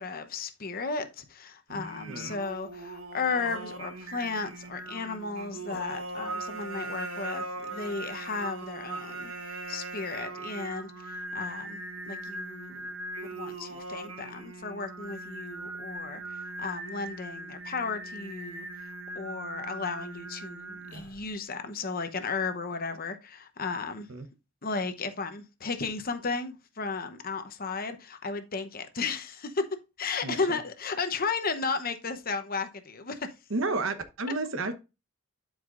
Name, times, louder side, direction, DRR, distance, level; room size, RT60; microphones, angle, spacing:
voice 1, 0.0-9.3 9.7-12.8 13.2-18.7 19.1-24.1 24.6-33.3, left 4 dB, 40° left, 0.9 m, -34 dB
Singing, 1.7-21.3, right 2 dB, 85° right, 1.3 m, -40 dB
voice 2, 30.2-30.6 33.5-34.7, right 3 dB, 65° right, 0.9 m, -31 dB
12.0 x 4.9 x 2.5 m
head